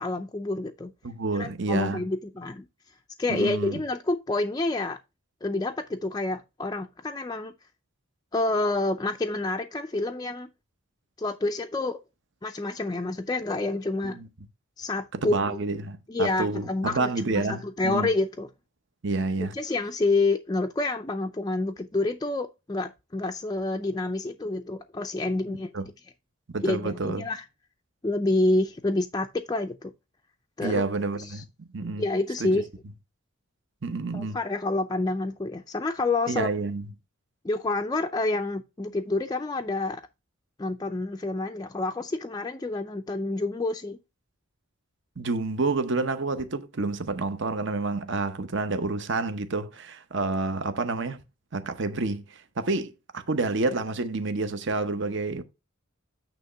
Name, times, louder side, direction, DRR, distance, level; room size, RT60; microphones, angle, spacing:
voice 1, 0.0-0.9 1.3-2.7 3.2-5.0 5.4-7.5 8.3-10.5 11.2-12.0 12.4-14.2 14.8-15.6 16.1-18.5 19.5-25.7 26.6-27.4 28.0-29.9 30.6-30.8 31.2-31.4 32.0-32.7 34.1-36.5 37.4-40.0 40.6-44.0, left 2 dB, 20° left, 0.4 m, -28 dB
voice 2, 1.0-2.0 3.3-3.8 14.1-14.3 15.1-18.1 19.0-19.5 25.7-25.8 26.5-27.2 30.6-32.0 32.4-32.6 33.8-34.4 36.3-36.9 45.2-51.2 51.5-55.4, right 3 dB, 55° right, 0.8 m, -29 dB
9.0 x 3.0 x 5.6 m
head